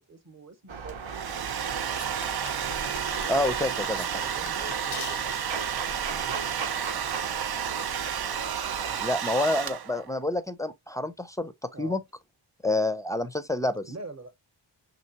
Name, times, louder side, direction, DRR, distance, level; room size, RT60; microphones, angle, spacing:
voice 1, 0.1-1.4 3.4-3.6 4.0-6.5 8.1-8.5 11.7-12.0 13.9-14.3, right 2 dB, 35° right, 0.9 m, -45 dB
sound 1, 0.7-9.1, right 5 dB, 75° right, 0.8 m, -38 dB
Domestic sounds home sounds, 0.9-10.1, right 9 dB, 55° right, 0.5 m, -31 dB
sound 2, 2.0-5.6, left 10 dB, 85° left, 0.5 m, -43 dB
voice 2, 3.3-4.3 9.0-11.5 11.8-12.0 12.6-13.9, left 2 dB, 10° left, 0.4 m, -28 dB
5.5 x 2.9 x 2.8 m
wide cardioid pair, 80°, 47 cm